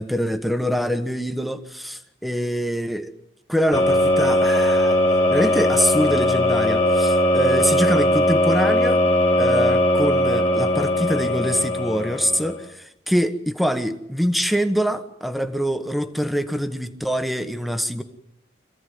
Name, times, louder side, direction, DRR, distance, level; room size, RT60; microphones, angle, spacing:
voice 1, 0.0-3.1 3.5-5.0 5.3-9.0 9.4-18.0, equal, ahead, 8 dB, 1.2 m, -24 dB
sound 1, 3.7-12.6, left 1 dB, 35° left, 2.5 m, -19 dB
26.0 x 16.0 x 9.4 m, 0.84 s
head